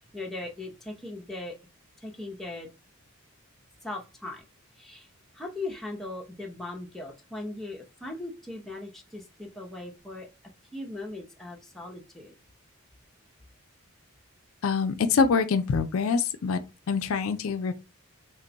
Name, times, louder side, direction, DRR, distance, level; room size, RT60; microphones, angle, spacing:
voice 1, 0.1-1.5 2.0-2.7 3.8-4.4 4.8-5.1 5.3-10.3 10.7-12.3, left 2 dB, ahead, 0.6 m, -39 dB
voice 2, 14.6-16.6 16.9-17.7, left 5 dB, 70° left, 0.4 m, -25 dB
3.4 x 2.2 x 3.9 m
head